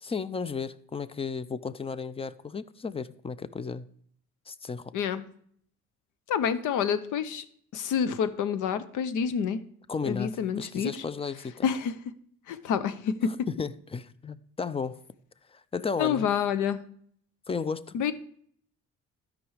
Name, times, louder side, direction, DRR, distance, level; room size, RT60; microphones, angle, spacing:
voice 1, 0.0-3.9 4.5-4.9 9.9-11.5 13.2-15.0 15.5-16.3 17.5-18.0, left 5 dB, 20° left, 0.5 m, -34 dB
voice 2, 6.3-7.4 7.7-9.6 10.0-10.9 11.6-11.9 12.5-13.5 16.0-16.8 17.9-18.1, left 7 dB, 80° left, 0.8 m, -28 dB
12.5 x 5.2 x 4.8 m
cardioid pair, 90°, 30 cm